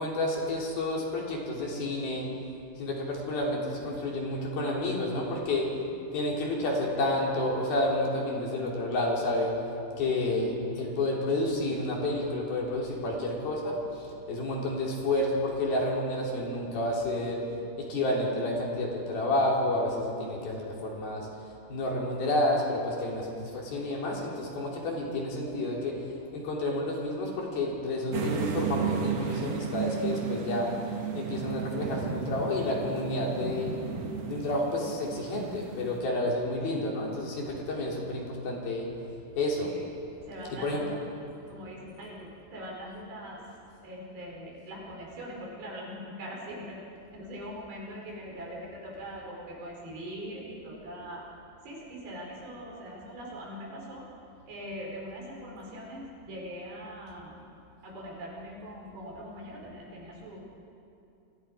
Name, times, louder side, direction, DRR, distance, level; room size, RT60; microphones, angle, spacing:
voice 1, 0.0-2.3 2.8-5.7 6.1-9.5 10.0-17.5 17.8-21.3 21.7-26.0 26.3-30.7 31.1-33.7 34.3-38.9 39.4-39.7 40.5-40.8, left 1 dB, 60° left, -2 dB, 5.0 m, -30 dB
sound 1, 28.1-36.0, right 6 dB, 50° right, 2.2 m, -34 dB
voice 2, 40.3-41.1 41.5-43.4 43.8-46.8 47.1-51.2 51.6-54.0 54.5-57.3 57.8-60.4, equal, 70° right, -3 dB, 6.9 m, -42 dB
29.5 x 23.0 x 5.0 m, 2.6 s
omnidirectional pair, 5.0 m